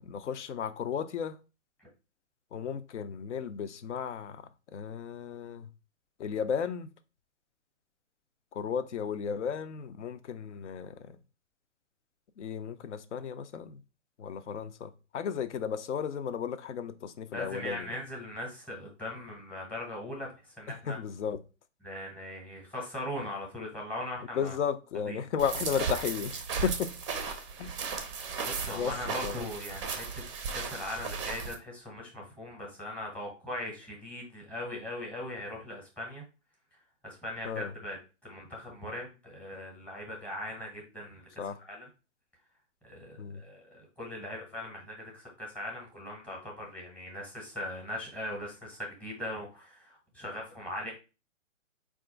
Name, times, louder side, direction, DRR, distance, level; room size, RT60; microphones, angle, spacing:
voice 1, 0.0-1.4 2.5-5.7 6.2-6.9 8.5-11.2 12.4-13.8 14.2-17.9 20.7-21.4 24.3-26.9 27.6-27.7 28.7-29.4 37.4-37.7 41.4-41.6 43.2-43.4, left 7 dB, 65° left, 0.6 m, -34 dB
voice 2, 17.3-21.0 21.8-24.6 25.1-25.2 28.4-30.2 30.5-36.2 37.0-38.0 38.2-41.3 41.7-41.9 42.8-50.9, left 1 dB, 5° left, 0.8 m, -40 dB
sound 1, 25.4-31.5, right 5 dB, 25° right, 0.5 m, -36 dB
4.2 x 2.4 x 3.8 m
hypercardioid pair, 135°, 38 cm